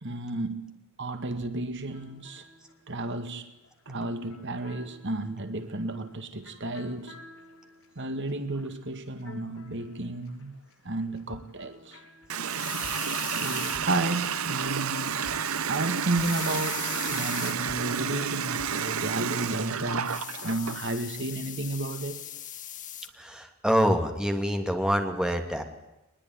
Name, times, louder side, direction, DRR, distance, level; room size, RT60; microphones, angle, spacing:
voice 1, 0.0-2.5 2.9-3.5 3.9-7.2 8.0-10.5 10.9-12.0 13.4-15.2 15.7-22.2, right 2 dB, 60° right, 2.0 m, -32 dB
sound 1, 1.9-10.7 11.0-18.8, left 1 dB, 70° left, 6.9 m, -51 dB
Water tap faucet, 12.3-20.8, right 7 dB, 85° right, 1.1 m, -31 dB
sound 2, 12.4-13.8 16.1-17.6 20.0-23.1, left 10 dB, 40° left, 1.9 m, -39 dB
voice 2, 23.2-25.6, equal, 5° right, 2.7 m, -26 dB
22.5 x 21.0 x 9.8 m
head